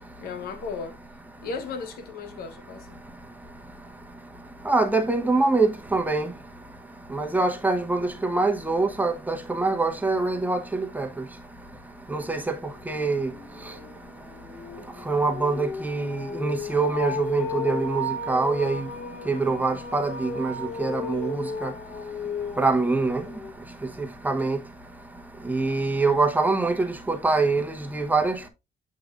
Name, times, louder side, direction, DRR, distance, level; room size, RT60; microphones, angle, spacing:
voice 1, 0.2-1.0 1.4-3.0, left 5 dB, 80° left, 1.0 m, -35 dB
voice 2, 4.7-6.3 7.1-10.6 10.9-11.1 12.1-12.5 12.9-13.3 15.1-18.8 19.3-20.5 20.8-21.7 22.6-23.2 24.2-24.6 25.5-26.7 27.1-28.5, right 3 dB, 10° right, 0.9 m, -24 dB
sound 1, 12.8-23.5, left 3 dB, 50° left, 1.0 m, -34 dB
7.7 x 5.3 x 2.4 m
cardioid pair, 130°, 15 cm